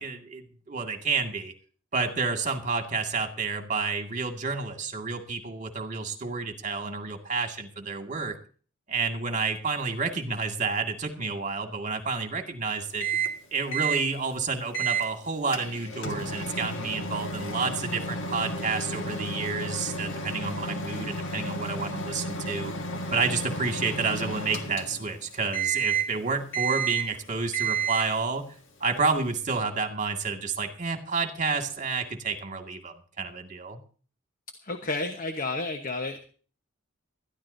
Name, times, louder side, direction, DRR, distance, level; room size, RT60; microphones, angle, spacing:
voice 1, 0.0-1.5 1.9-8.4 8.9-13.1 13.5-22.7 23.1-28.6 28.8-33.8, right 4 dB, 40° right, 4 dB, 2.0 m, -30 dB
Microwave oven, 13.0-13.4 13.7-14.0 14.7-15.1 15.5-25.2 25.5-26.2 26.5-27.2 27.5-28.2, right 4 dB, 70° left, 1.8 m, -31 dB
voice 2, 34.6-36.2, left 2 dB, 45° left, 6 dB, 1.2 m, -31 dB
20.0 x 13.5 x 2.7 m, 0.41 s
head